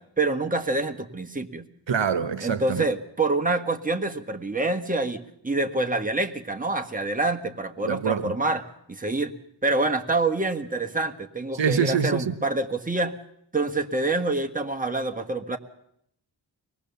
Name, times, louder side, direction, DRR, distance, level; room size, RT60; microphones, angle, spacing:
voice 1, 0.0-1.7 2.4-9.3 9.6-13.2 13.5-15.6, right 2 dB, 15° right, 1.5 m, -26 dB
voice 2, 1.9-2.8 7.9-8.3 11.5-12.3, right 6 dB, 70° right, 1.2 m, -25 dB
24.0 x 19.5 x 7.0 m
wide cardioid pair, 95°, 46 cm